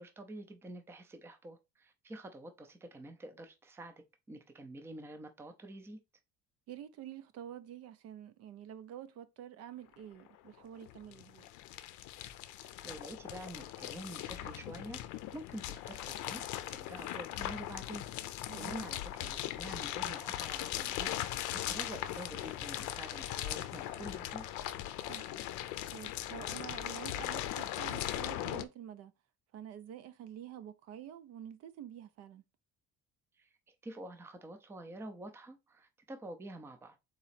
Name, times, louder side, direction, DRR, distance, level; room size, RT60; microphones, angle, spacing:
voice 1, 0.0-4.0 4.3-6.0 12.5-15.0 15.3-16.4 16.7-24.5 33.4-37.0, right 1 dB, 10° right, 0.4 m, -48 dB
voice 2, 6.7-11.5 18.5-18.9 25.1-25.4 25.9-29.1 29.5-32.4, right 10 dB, 60° right, 0.5 m, -48 dB
sound 1, 9.9-10.0 10.2-28.6, left 13 dB, 80° left, 0.5 m, -39 dB
4.0 x 2.9 x 4.2 m
cardioid pair, 170°, 29 cm